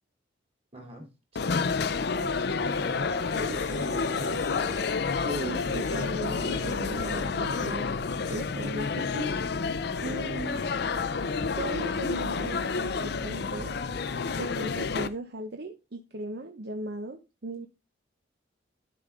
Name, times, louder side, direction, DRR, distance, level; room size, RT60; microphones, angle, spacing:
voice 1, 0.7-1.1 1.3-2.2 3.4-4.5 10.8-11.0, equal, 30° right, 1 dB, 3.2 m, -46 dB
sound 1, 1.4-15.1, left 4 dB, 55° left, 0.5 m, -30 dB
sound 2, 1.4-13.6, right 1 dB, 5° right, 0.6 m, -50 dB
sound 3, 3.3-5.0 5.5-7.8 8.2-8.7, left 2 dB, 35° left, 1.2 m, -40 dB
voice 2, 5.2-7.9 8.3-9.4 10.0-10.7 11.5-13.7 14.4-17.7, right 1 dB, 55° right, 6 dB, 0.7 m, -37 dB
11.5 x 5.2 x 3.6 m, 0.28 s
head